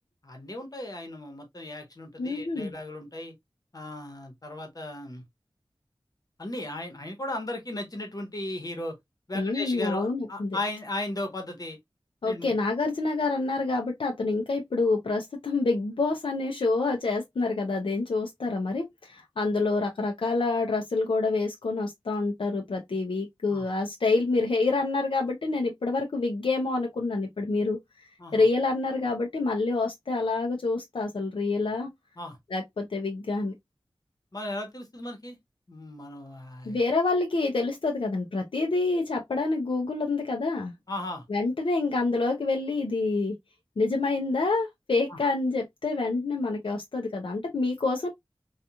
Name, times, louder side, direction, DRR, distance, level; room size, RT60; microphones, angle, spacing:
voice 1, 0.2-3.3 3.7-5.2 6.4-9.0 9.3-11.8 12.3-12.5 23.5-23.6 28.2-28.4 32.2-32.4 34.3-35.4 35.7-36.8 40.9-41.2 45.1-45.2, left 1 dB, 45° left, 1.0 m, -36 dB
voice 2, 2.2-2.7 9.3-10.6 12.2-31.9 32.5-33.5 36.6-40.7 41.3-43.3 43.8-48.1, left 3 dB, 75° left, 0.5 m, -27 dB
2.8 x 2.4 x 2.2 m
wide cardioid pair, 65°, 9 cm